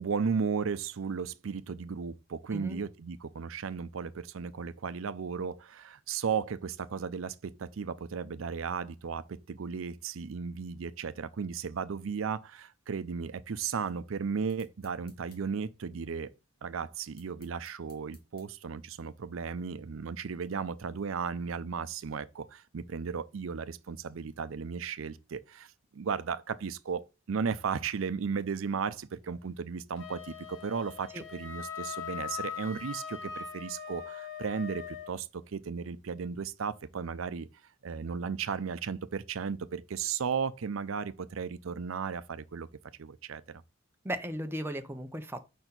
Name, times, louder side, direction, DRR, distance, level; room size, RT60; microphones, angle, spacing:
voice 1, 0.0-16.3 16.6-25.7 25.9-37.5 37.8-42.7 43.0-43.6, right 6 dB, 85° right, 0.5 m, -35 dB
voice 2, 2.5-2.8 31.1-31.2 44.0-45.5, equal, 10° right, 0.6 m, -36 dB
sound 1, 14.5-15.4 17.0-18.5, left 4 dB, 50° left, 1.8 m, -60 dB
Wind instrument woodwind instrument, 30.0-35.1, left 7 dB, 75° left, 1.2 m, -41 dB
5.3 x 4.5 x 3.9 m
head